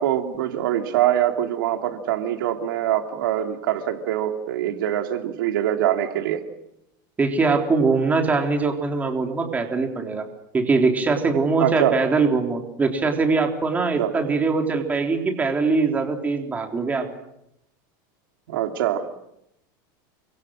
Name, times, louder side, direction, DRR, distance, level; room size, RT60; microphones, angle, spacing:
voice 1, 0.0-6.4 11.6-12.0 14.0-14.1 18.5-19.0, right 11 dB, 85° right, 5 dB, 2.9 m, -23 dB
voice 2, 7.2-10.3 10.5-17.1, right 4 dB, 15° right, 3 dB, 3.7 m, -22 dB
29.0 x 25.5 x 6.5 m, 0.82 s
supercardioid pair, 155°, 11 cm